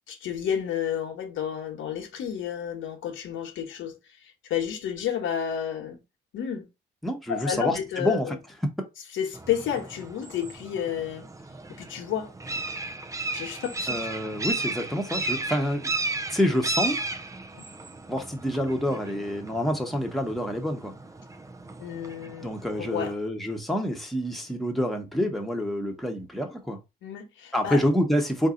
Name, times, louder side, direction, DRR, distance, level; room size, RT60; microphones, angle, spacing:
voice 1, 0.1-3.9 4.5-6.0 6.3-6.7 7.3-8.4 9.1-11.3 11.8-12.3 13.3-14.0 14.2-14.3 17.5-17.6 21.8-22.5 22.8-23.1 27.0-27.8, left 9 dB, 80° left, 1.1 m, -31 dB
voice 2, 7.0-8.3 13.9-15.9 16.3-17.0 18.1-20.9 22.4-26.8 27.5-28.5, equal, ahead, 1.1 m, -27 dB
sound 1, 9.3-23.1, right 2 dB, 15° right, 0.5 m, -35 dB
4.0 x 2.7 x 3.8 m
cardioid pair, 90°, 20 cm